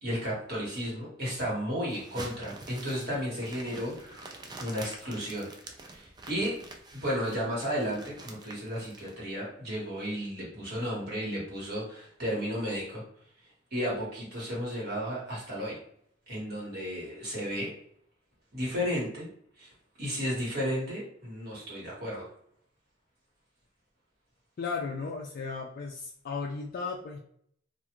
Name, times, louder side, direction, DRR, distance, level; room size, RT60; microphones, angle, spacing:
voice 1, 0.0-5.5 5.9-6.6 6.9-13.0 13.7-15.8 16.3-17.7 18.5-19.3 19.6-19.7 20.0-22.3, equal, 55° right, -5 dB, 1.4 m, -33 dB
sound 1, 1.9-9.1, right 2 dB, 20° right, 0.4 m, -46 dB
voice 2, 24.6-27.2, left 4 dB, 50° left, 0 dB, 0.3 m, -35 dB
2.4 x 2.3 x 2.9 m, 0.66 s
head